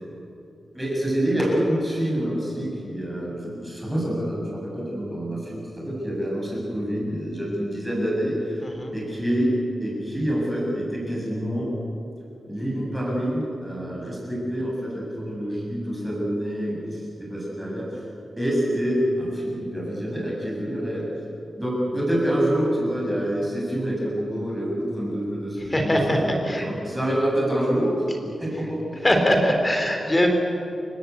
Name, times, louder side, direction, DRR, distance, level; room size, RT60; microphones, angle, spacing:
voice 1, 0.7-8.7 8.9-9.5 9.8-11.7 12.4-18.0 18.4-21.1 21.6-28.8, equal, 5° right, -4 dB, 7.9 m, -27 dB
voice 2, 25.7-26.7 29.0-30.3, equal, 15° left, 3 dB, 3.3 m, -21 dB
29.5 x 17.5 x 8.5 m, 2.8 s
wide cardioid pair, 180°, 0 cm